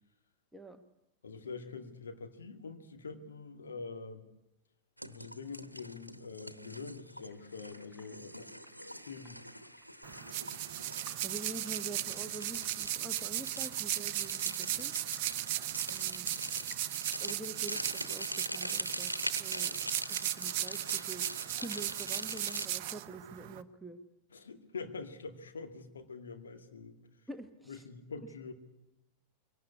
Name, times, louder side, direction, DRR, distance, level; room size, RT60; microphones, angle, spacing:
voice 1, 0.5-0.8 11.2-16.3 17.2-19.1 19.4-19.7 20.1-24.0 27.3-27.8 28.2-28.3, right 2 dB, ahead, 6 dB, 1.3 m, -46 dB
voice 2, 1.2-4.3 5.1-8.5 9.1-9.5 24.3-27.0 27.7-28.5, left 4 dB, 70° left, 5 dB, 2.2 m, -45 dB
sound 1, 5.0-22.7, equal, 90° right, 1.0 m, -43 dB
sound 2, 7.2-17.3, left 1 dB, 20° left, 4.0 m, -62 dB
sound 3, 10.0-23.6, right 14 dB, 45° right, 0.8 m, -36 dB
23.5 x 18.0 x 9.8 m, 0.93 s
figure-of-eight pair, 90°, 0 cm